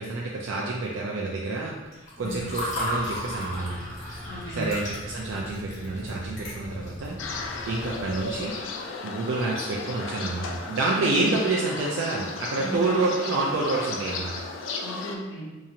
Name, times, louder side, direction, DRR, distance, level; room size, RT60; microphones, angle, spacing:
voice 1, 0.0-3.9 4.6-7.2 7.4-8.5 9.0-14.3, right 3 dB, 90° right, -3 dB, 0.4 m, -28 dB
Water / Fill (with liquid), 1.9-7.1, left 1 dB, 45° left, 1.3 m, -35 dB
sound 1, 2.1-8.7, left 1 dB, 10° left, 0.5 m, -42 dB
voice 2, 4.3-4.7 10.9-11.3 12.6-12.9 14.8-15.6, equal, 70° left, -3 dB, 0.7 m, -36 dB
sound 2, 7.2-15.2, left 4 dB, 85° left, 0.3 m, -35 dB
2.9 x 2.7 x 2.4 m, 1.2 s
head